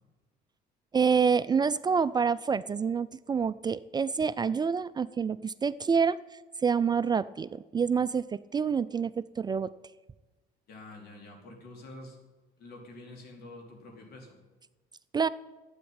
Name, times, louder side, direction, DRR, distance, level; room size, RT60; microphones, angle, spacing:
voice 1, 0.9-6.2 6.6-9.7 15.1-15.3, right 6 dB, 25° right, 15 dB, 0.4 m, -27 dB
voice 2, 10.7-12.2 12.6-14.4, left 2 dB, 70° left, 2 dB, 4.1 m, -47 dB
12.5 x 8.8 x 8.9 m, 1.2 s
cardioid pair, 110°, 17 cm